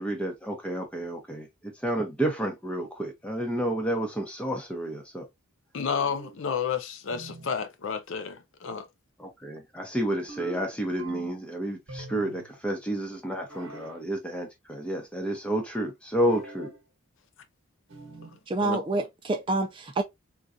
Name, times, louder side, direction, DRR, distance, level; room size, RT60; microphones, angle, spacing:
voice 1, 0.0-1.5 1.8-5.2 9.2-16.7, right 1 dB, 5° left, 0.8 m, -30 dB
voice 2, 5.7-8.8 18.6-18.8, left 6 dB, 60° left, 0.4 m, -31 dB
sound 1, 5.9-6.4 7.1-7.6 10.3-11.5 11.9-12.5 13.5-14.0 16.3-16.8 17.9-18.4, right 2 dB, 65° right, 1.1 m, -44 dB
voice 3, 18.5-20.0, right 2 dB, 25° right, 0.3 m, -27 dB
3.8 x 2.4 x 2.5 m
head